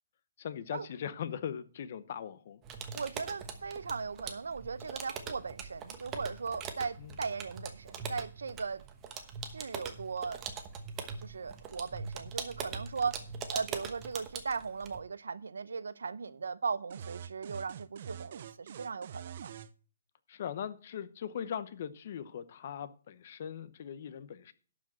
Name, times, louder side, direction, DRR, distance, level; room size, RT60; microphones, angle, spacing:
voice 1, 0.4-2.6 7.0-7.1 20.3-24.5, left 8 dB, 45° left, 0.9 m, -40 dB
sound 1, 2.6-15.0, right 6 dB, 20° right, 1.1 m, -42 dB
voice 2, 2.9-8.8 9.5-10.4 11.2-13.2 13.5-19.5, right 5 dB, 90° right, 0.7 m, -38 dB
sound 2, 16.9-19.7, right 8 dB, 45° right, 0.6 m, -45 dB
11.5 x 5.1 x 7.6 m
hypercardioid pair, 160°, 0 cm